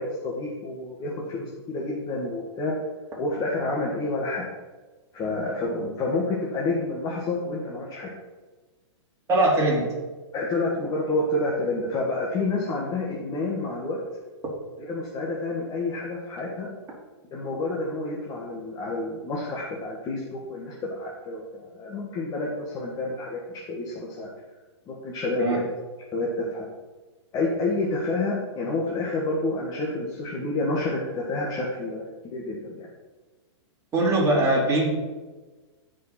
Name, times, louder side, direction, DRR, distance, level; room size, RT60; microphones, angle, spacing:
voice 1, 0.0-2.8 3.2-4.4 5.1-8.1 10.3-14.0 14.9-16.7 17.3-24.3 24.9-25.6 26.1-26.7 27.3-32.9, left 2 dB, 25° left, -3 dB, 1.6 m, -29 dB
voice 2, 9.3-9.9 25.4-25.6 33.9-34.9, right 2 dB, 20° right, -4 dB, 3.1 m, -21 dB
14.5 x 5.3 x 4.3 m, 1.3 s
hypercardioid pair, 140°, 15 cm